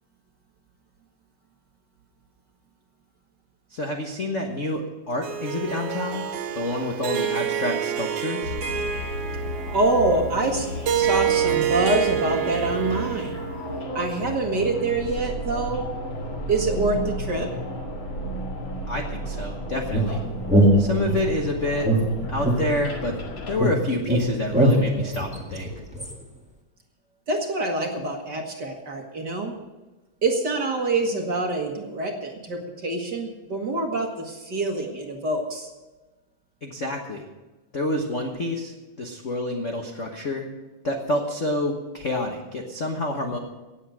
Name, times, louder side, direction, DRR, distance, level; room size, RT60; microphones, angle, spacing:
voice 1, 3.7-6.3 6.6-8.6 18.9-20.2 20.8-21.9 22.3-23.2 23.5-25.7 36.6-37.3 37.7-40.4 40.8-43.4, left 1 dB, 70° left, 2 dB, 0.7 m, -28 dB
Harp, 5.2-13.7, right 9 dB, 75° right, 2.5 m, -27 dB
sound 1, 8.4-23.6, equal, 45° left, 2.6 m, -33 dB
voice 2, 9.7-10.7 10.9-13.4 13.9-15.8 16.5-17.5 27.3-29.6 30.2-35.7, right 2 dB, 45° right, 2 dB, 1.7 m, -25 dB
sound 2, 19.9-21.4 21.8-23.3 23.6-26.1, right 1 dB, 5° right, 1.2 m, -22 dB
17.5 x 8.3 x 6.4 m, 1.2 s
omnidirectional pair, 3.5 m